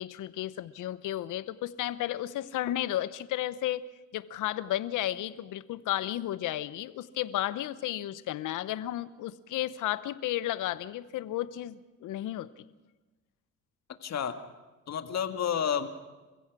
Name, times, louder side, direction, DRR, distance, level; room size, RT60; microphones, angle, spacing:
voice 1, 0.0-12.6, left 13 dB, 85° left, 15 dB, 1.0 m, -33 dB
voice 2, 14.0-14.4 14.9-15.9, left 8 dB, 60° left, 7 dB, 2.0 m, -30 dB
27.5 x 16.0 x 6.2 m, 1.2 s
cardioid pair, 90°, 30 cm